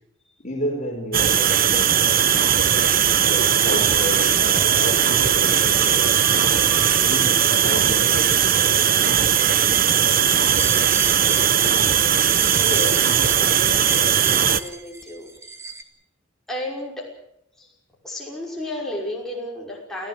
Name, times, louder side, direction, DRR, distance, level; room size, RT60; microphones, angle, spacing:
voice 1, 0.4-2.1 3.3-6.1 7.1-8.8, equal, 35° left, 2 dB, 4.9 m, -31 dB
sound 1, 1.1-14.6, right 8 dB, 45° right, 0.9 m, -18 dB
sound 2, 5.7-15.8, right 3 dB, 15° right, 1.6 m, -37 dB
voice 2, 12.3-15.5 16.5-17.1 17.6-17.7 18.0-20.1, left 1 dB, ahead, -3 dB, 5.7 m, -33 dB
29.0 x 15.5 x 7.9 m, 0.75 s
head